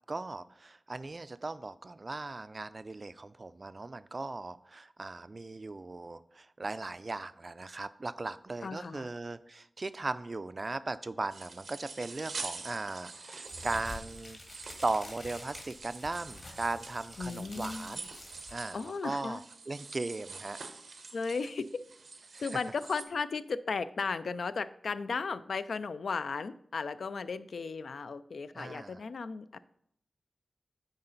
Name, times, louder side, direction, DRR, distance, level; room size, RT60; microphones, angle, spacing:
voice 1, 0.1-18.1 18.5-19.4 19.7-20.6 22.3-22.5 28.5-29.0, right 3 dB, 40° right, 14 dB, 0.3 m, -38 dB
voice 2, 8.6-9.1 17.2-18.0 18.7-19.4 21.1-21.6 22.4-29.6, left 4 dB, 85° left, 13 dB, 0.3 m, -35 dB
sound 1, 11.3-23.0, right 4 dB, 85° right, 0.7 m, -46 dB
sound 2, 13.5-19.0, left 2 dB, 50° left, 1.6 m, -48 dB
9.7 x 3.9 x 3.9 m, 0.70 s
wide cardioid pair, 110°, 0 cm